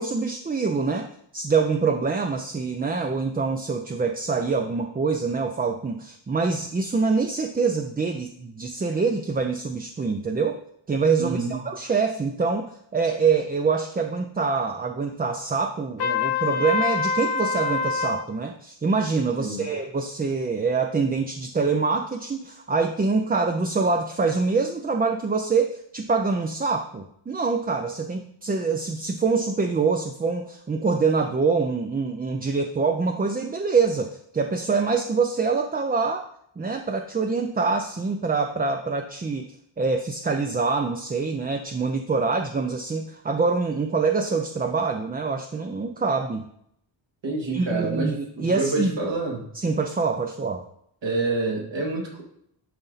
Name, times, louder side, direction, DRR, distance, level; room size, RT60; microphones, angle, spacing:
voice 1, 0.0-10.6 10.9-36.2 36.6-46.5 47.5-49.0 49.5-50.7, right 4 dB, 20° right, 5 dB, 0.4 m, -25 dB
voice 2, 11.2-11.6 19.4-19.6 47.2-49.4 51.0-52.2, right 3 dB, 65° right, -1 dB, 2.4 m, -27 dB
Trumpet, 16.0-18.2, left 5 dB, 55° left, 0.7 m, -25 dB
11.0 x 4.0 x 4.0 m, 0.71 s
wide cardioid pair, 125°, 46 cm